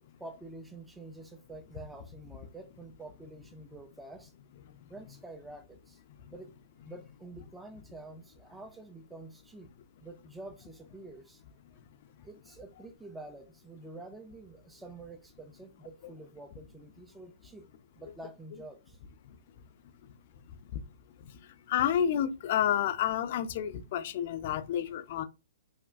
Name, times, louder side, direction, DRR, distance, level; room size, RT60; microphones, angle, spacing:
voice 1, 0.2-4.3 4.9-6.0 6.3-6.5 6.8-9.7 10.0-11.4 11.7-11.8 12.2-17.7 18.0-19.0, right 2 dB, 5° right, 0.5 m, -48 dB
voice 2, 21.7-25.2, left 10 dB, 50° left, 0.4 m, -29 dB
3.3 x 2.4 x 2.4 m
hypercardioid pair, 125°, 0 cm